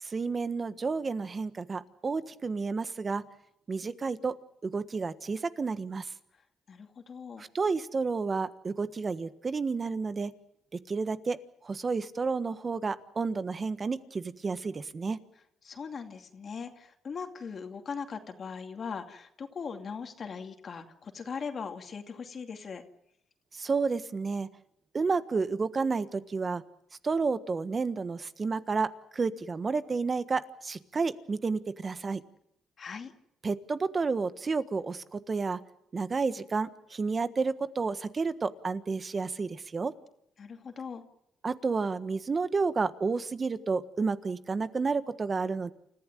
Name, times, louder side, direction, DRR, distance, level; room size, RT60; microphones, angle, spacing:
voice 1, 0.0-3.2 3.7-4.3 4.6-6.1 7.4-10.3 10.9-11.4 11.6-15.2 23.5-24.5 24.9-26.6 27.0-28.9 29.1-32.2 33.4-35.6 35.9-39.9 41.4-45.7, right 4 dB, 35° right, 12 dB, 1.4 m, -31 dB
voice 2, 6.7-7.4 15.6-22.8 32.8-33.1 40.4-41.0, left 5 dB, 45° left, 5 dB, 2.5 m, -40 dB
29.0 x 15.0 x 9.1 m, 0.77 s
cardioid pair, 90°, 0 cm